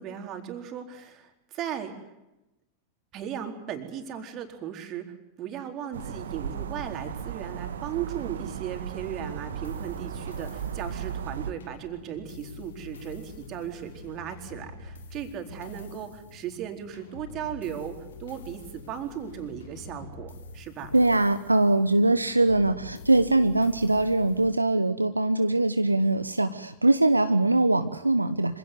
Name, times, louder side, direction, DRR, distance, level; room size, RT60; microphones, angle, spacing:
voice 1, 0.0-2.1 3.1-20.9, right 9 dB, 35° right, 5 dB, 4.2 m, -37 dB
sound 1, 5.9-11.5, right 8 dB, 65° right, 1.8 m, -36 dB
sound 2, 9.0-24.5, left 3 dB, 65° left, 3.4 m, -46 dB
voice 2, 20.9-28.6, right 2 dB, 85° right, 10 dB, 0.9 m, -22 dB
26.0 x 17.5 x 9.5 m, 0.95 s
figure-of-eight pair, 90°, 0 cm